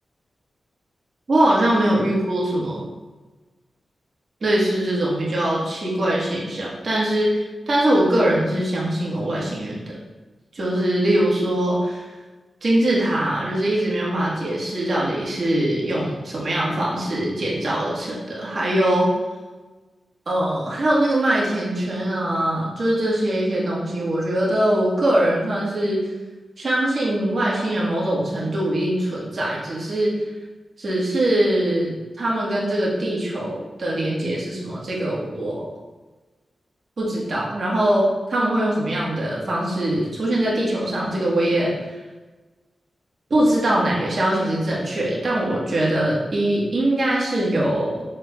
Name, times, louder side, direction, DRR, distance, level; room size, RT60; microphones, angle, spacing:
voice 1, 1.3-2.9 4.4-10.0 10.5-12.0 12.6-19.1 20.3-26.0 26.6-30.1 30.8-35.7 37.0-41.7 43.3-48.0, right 1 dB, 55° right, -5 dB, 1.5 m, -22 dB
6.3 x 3.6 x 2.3 m, 1.2 s
cardioid pair, 80°, 0 cm